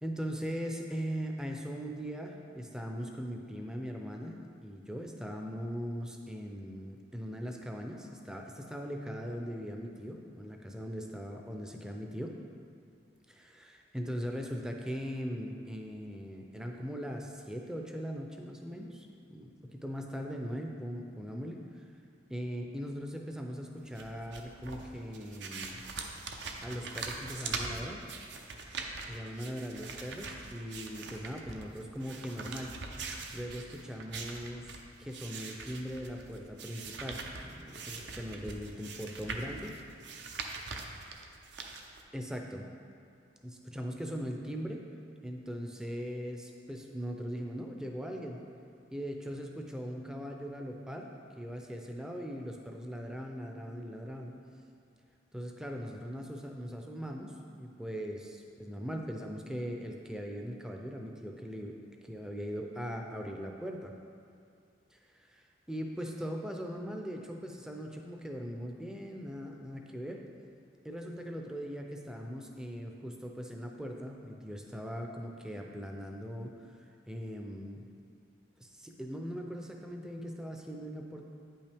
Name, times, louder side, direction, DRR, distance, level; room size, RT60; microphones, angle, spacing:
voice 1, 0.0-12.4 13.3-21.8 22.3-25.8 26.6-28.0 29.1-32.7 33.3-34.7 35.0-39.6 42.1-42.7 43.4-44.8 45.2-48.4 48.9-51.1 51.4-54.3 55.3-61.8 62.0-63.9 64.9-70.2 70.8-76.7 77.1-77.8 78.6-81.3, equal, 5° right, 2 dB, 0.4 m, -40 dB
sound 1, 23.9-42.0, right 4 dB, 65° right, 0.6 m, -42 dB
8.9 x 5.5 x 3.5 m, 2.4 s
head